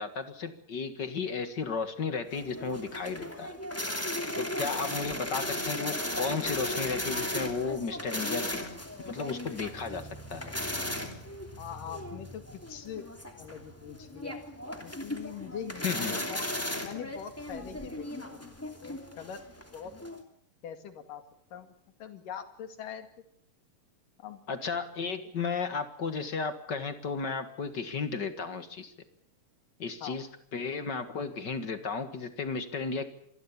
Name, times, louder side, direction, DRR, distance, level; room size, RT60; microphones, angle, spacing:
voice 1, 0.0-3.6 4.4-8.7 9.1-10.5 15.8-16.3 24.5-28.9 29.8-33.1, left 5 dB, 40° left, 10 dB, 1.7 m, -34 dB
sound 1, 2.3-20.2, left 1 dB, 5° left, 2.2 m, -36 dB
voice 2, 11.6-13.1 13.4-14.4 14.8-16.4 16.8-18.5 18.8-19.4 19.7-19.9 20.6-21.2 21.5-21.7 22.0-23.1 24.2-24.4 30.0-30.2, left 8 dB, 80° left, 9 dB, 3.8 m, -42 dB
26.5 x 20.5 x 7.1 m, 0.71 s
omnidirectional pair, 3.7 m